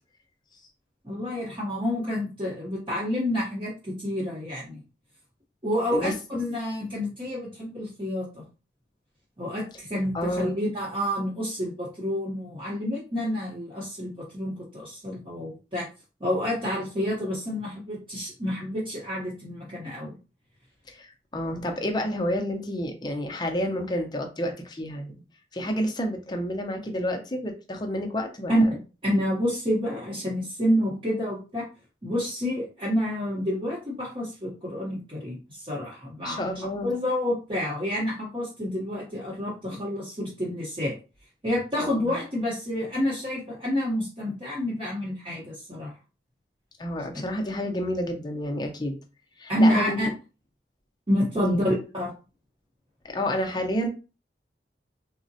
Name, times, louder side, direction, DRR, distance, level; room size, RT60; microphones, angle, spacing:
voice 1, 1.0-4.8 5.6-8.4 9.4-15.9 16.2-20.1 21.5-21.6 28.5-28.6 29.0-31.6 32.0-41.0 41.4-45.9 47.0-47.1 49.5-50.1 51.1-52.1, equal, 30° right, -6 dB, 0.8 m, -28 dB
voice 2, 10.1-10.6 20.9-25.1 25.5-28.7 36.2-37.0 41.8-42.2 46.8-49.0 49.4-50.0 51.4-51.6 53.0-53.9, equal, 25° left, 3 dB, 0.5 m, -30 dB
3.6 x 2.0 x 2.6 m, 0.33 s
head